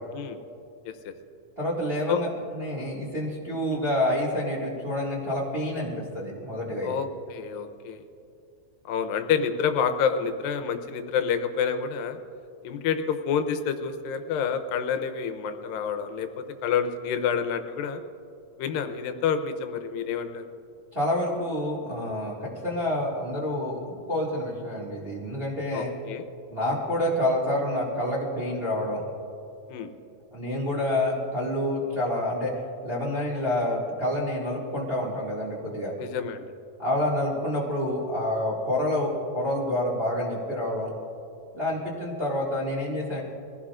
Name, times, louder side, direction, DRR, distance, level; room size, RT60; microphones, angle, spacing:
voice 1, 1.6-6.9 20.9-25.9 26.5-29.0 30.3-32.5 32.8-35.9 36.8-40.9 41.5-43.2, left 1 dB, 25° right, -5 dB, 1.6 m, -28 dB
voice 2, 6.8-8.0 8.9-12.2 12.6-18.0 18.6-20.5 25.7-26.3 29.7-29.9 36.0-36.5, left 7 dB, 85° left, 8 dB, 2.5 m, -28 dB
23.0 x 15.5 x 2.5 m, 2.6 s
omnidirectional pair, 4.0 m